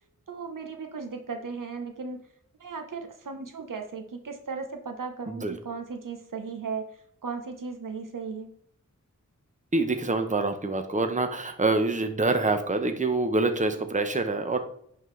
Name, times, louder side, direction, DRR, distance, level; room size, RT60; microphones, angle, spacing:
voice 1, 0.3-2.2 2.6-6.9 7.2-8.5, right 5 dB, 75° right, 5 dB, 1.0 m, -36 dB
voice 2, 9.7-14.6, right 2 dB, 25° right, 7 dB, 0.8 m, -26 dB
10.5 x 3.9 x 3.3 m, 0.70 s
wide cardioid pair, 55°, 32 cm